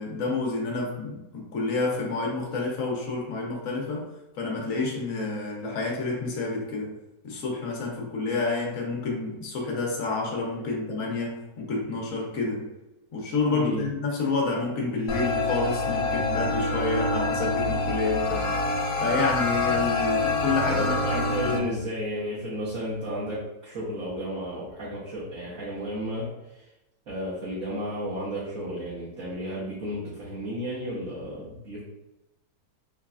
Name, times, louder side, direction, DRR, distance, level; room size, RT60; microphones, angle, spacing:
voice 1, 0.0-4.1 4.4-6.9 7.2-12.7 13.1-18.5 19.0-21.6, left 3 dB, 60° left, -1 dB, 1.1 m, -29 dB
voice 2, 13.5-13.9 20.7-26.3 26.5-26.6 27.1-31.8, equal, 55° right, -9 dB, 1.3 m, -33 dB
sound 1, 15.1-21.6, left 3 dB, 80° left, 1.2 m, -26 dB
3.9 x 3.2 x 2.3 m, 0.97 s
omnidirectional pair, 1.8 m